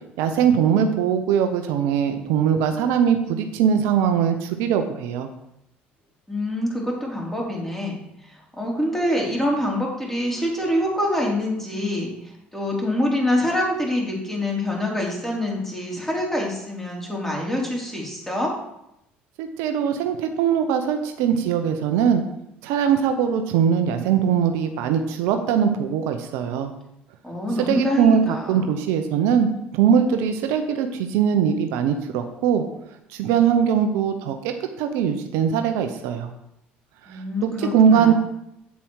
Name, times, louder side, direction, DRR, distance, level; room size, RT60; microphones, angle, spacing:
voice 1, 0.2-5.3 19.4-22.2 22.6-26.7 27.7-28.2 28.5-32.6 33.1-36.3 37.1-38.1, right 7 dB, 75° right, 6 dB, 0.8 m, -21 dB
voice 2, 6.3-18.5 27.2-28.8 37.1-38.1, left 1 dB, 5° left, -3 dB, 3.9 m, -25 dB
8.5 x 7.1 x 4.8 m, 0.82 s
hypercardioid pair, 65°, 5 cm